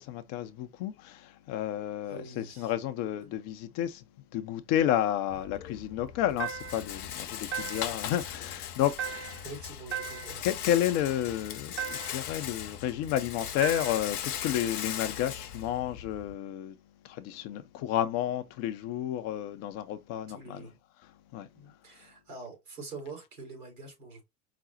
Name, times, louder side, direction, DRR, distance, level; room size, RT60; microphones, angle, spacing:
voice 1, 0.0-4.0 4.3-9.4 10.4-16.8 17.0-20.6 21.3-21.5, left 11 dB, 35° left, 0.5 m, -31 dB
voice 2, 2.0-2.7 3.2-3.3 5.3-5.4 7.6-7.8 9.4-10.5 20.3-20.7 21.5-24.2, right 3 dB, 75° right, 2.7 m, -45 dB
Rattle, 5.3-16.3, left 9 dB, 75° left, 0.7 m, -39 dB
sound 1, 6.4-6.9 7.5-8.1 9.0-9.5 9.9-10.5 11.8-12.3 13.6-14.1, right 9 dB, 25° right, 0.8 m, -37 dB
4.9 x 2.0 x 3.9 m
figure-of-eight pair, 75°, 45 cm